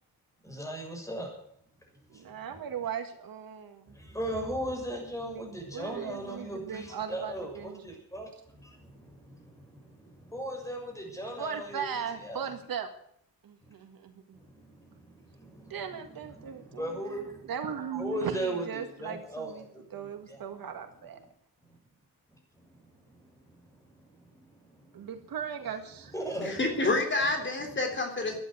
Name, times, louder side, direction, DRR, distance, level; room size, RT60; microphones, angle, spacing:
voice 1, 0.4-1.3 2.1-2.2 3.9-12.5 13.6-13.7 14.3-15.8 16.4-17.5 18.0-18.7 19.0-20.4 21.6-21.8 22.5-25.1 26.1-26.8 27.7-27.8 28.3-28.4, right 1 dB, 10° left, 1 dB, 6.8 m, -38 dB
voice 2, 2.1-4.0 5.2-7.9 11.4-12.9 13.4-14.4 15.7-21.2 24.9-26.1, right 7 dB, 70° right, 7 dB, 1.9 m, -38 dB
voice 3, 26.4-28.4, left 2 dB, 30° left, 3 dB, 3.6 m, -28 dB
12.5 x 10.5 x 9.6 m, 0.68 s
cardioid pair, 105°, 36 cm